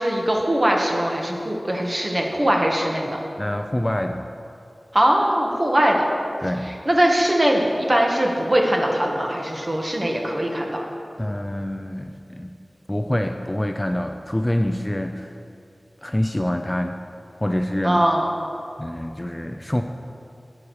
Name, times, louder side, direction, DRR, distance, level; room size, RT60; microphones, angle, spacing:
voice 1, 0.0-3.2 4.9-6.1 6.7-10.8 17.8-18.3, right 1 dB, 35° right, 0 dB, 1.5 m, -21 dB
voice 2, 3.4-4.3 6.4-6.7 11.2-12.5 12.9-15.3 16.0-17.0 17.4-18.0 18.8-19.8, left 1 dB, 15° left, 5 dB, 0.5 m, -25 dB
11.5 x 8.6 x 4.8 m, 2.5 s
wide cardioid pair, 65°, 0 cm